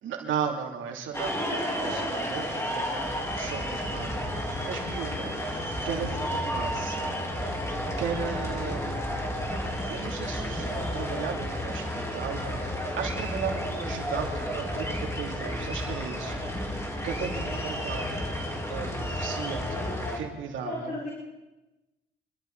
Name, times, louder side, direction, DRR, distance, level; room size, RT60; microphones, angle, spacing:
voice 1, 0.0-5.3 5.8-7.1 8.0-8.8 9.9-12.6 12.9-16.4 17.0-18.2 18.7-19.8 20.1-20.9, right 6 dB, 75° right, 2 dB, 2.8 m, -36 dB
sound 1, 1.1-20.2, equal, 15° left, 3.3 m, -32 dB
voice 2, 1.5-2.3 19.7-20.2 20.6-21.1, left 2 dB, 50° left, -4 dB, 4.4 m, -36 dB
25.5 x 12.5 x 4.0 m, 1.1 s
cardioid pair, 90°, 20 cm